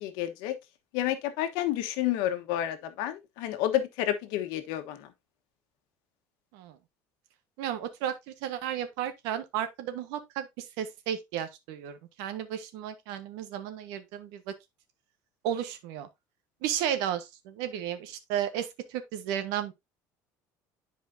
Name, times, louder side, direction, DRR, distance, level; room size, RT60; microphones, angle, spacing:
voice 1, 0.0-0.5 0.9-5.0, left 12 dB, 85° left, 1.3 m, -30 dB
voice 2, 7.6-14.5 15.4-16.1 16.6-19.7, right 10 dB, 90° right, 1.3 m, -33 dB
10.5 x 5.0 x 2.7 m
cardioid pair, 165°, 7 cm